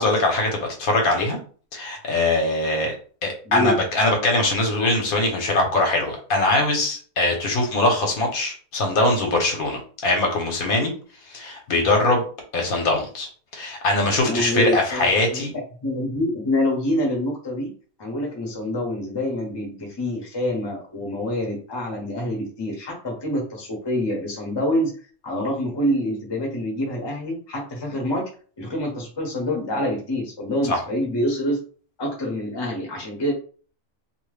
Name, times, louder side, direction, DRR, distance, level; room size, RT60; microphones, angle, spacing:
voice 1, 0.0-1.4 1.7-2.9 3.2-10.9 11.3-12.2 12.5-15.5 30.7-30.8, left 2 dB, 75° left, 2 dB, 1.3 m, -22 dB
voice 2, 3.4-3.8 14.2-15.4 15.8-17.7 18.0-24.9 25.2-28.3 28.6-31.6 32.0-33.3, left 1 dB, 25° left, 0 dB, 0.7 m, -26 dB
2.8 x 2.1 x 3.2 m, 0.41 s
omnidirectional pair, 1.5 m